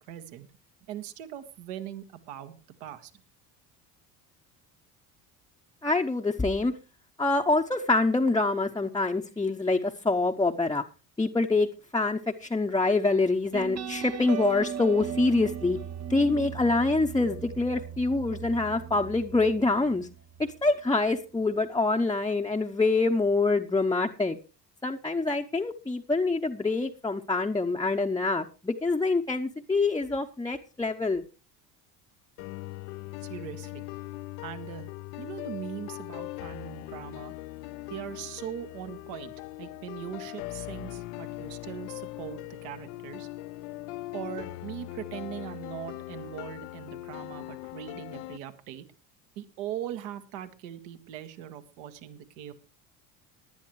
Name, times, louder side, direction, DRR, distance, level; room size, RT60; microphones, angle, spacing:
voice 1, 0.1-0.5 0.9-3.1 33.2-33.8 34.4-34.9 35.2-37.3 37.9-43.3 44.1-48.8 49.3-52.5, right 11 dB, 75° right, 8 dB, 1.6 m, -40 dB
voice 2, 5.8-6.7 7.2-10.8 11.2-11.7 11.9-15.8 16.1-20.1 20.6-24.4 24.8-31.2, left 3 dB, 10° left, 1 dB, 0.7 m, -25 dB
sound 1, 13.5-20.7, right 8 dB, 30° right, 0.9 m, -38 dB
sound 2, 32.4-48.4, left 18 dB, 65° left, 0.6 m, -40 dB
18.5 x 10.5 x 3.1 m, 0.32 s
hypercardioid pair, 70°, 49 cm